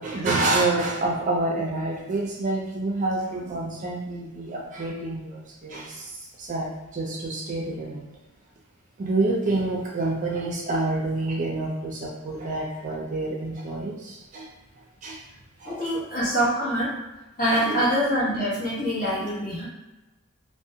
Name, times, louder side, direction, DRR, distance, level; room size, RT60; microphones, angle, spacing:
voice 1, 0.0-6.1 6.4-8.1 9.0-14.5 15.0-15.2 15.6-15.7 17.5-17.8, right 2 dB, 35° right, -2 dB, 0.4 m, -28 dB
voice 2, 15.6-16.9 17.4-19.7, equal, 40° left, -8 dB, 1.0 m, -25 dB
2.4 x 2.1 x 2.7 m, 1.1 s
head